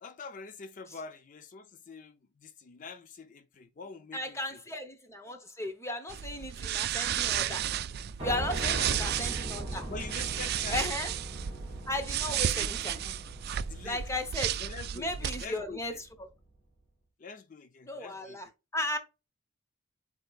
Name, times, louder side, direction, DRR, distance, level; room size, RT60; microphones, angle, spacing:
voice 1, 0.0-4.6 8.6-9.0 9.9-10.9 12.2-12.7 13.0-13.3 13.7-14.0 14.6-16.0 17.2-18.5, left 4 dB, 40° left, 0.4 m, -45 dB
voice 2, 4.1-7.6 8.2-9.9 10.7-11.1 11.9-13.0 13.8-14.6 14.9-15.9 17.9-19.0, left 1 dB, 15° left, 0.9 m, -35 dB
sound 1, 6.1-15.5, right 10 dB, 50° right, 0.3 m, -33 dB
Piano, 8.2-16.2, right 1 dB, 25° right, 2.5 m, -41 dB
7.8 x 2.9 x 2.3 m
head